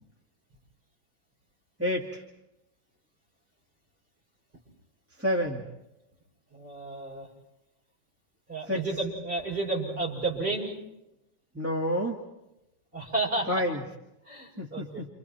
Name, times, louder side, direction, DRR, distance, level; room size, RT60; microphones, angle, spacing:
voice 1, 1.8-2.2 5.2-5.6 8.7-8.8 11.5-12.2 13.5-13.8 14.6-15.1, equal, 5° right, -2 dB, 2.0 m, -29 dB
voice 2, 6.5-7.3 8.5-10.8 12.9-13.5 14.3-15.0, right 3 dB, 25° right, -2 dB, 7.3 m, -31 dB
29.0 x 28.0 x 4.6 m, 0.91 s
omnidirectional pair, 2.1 m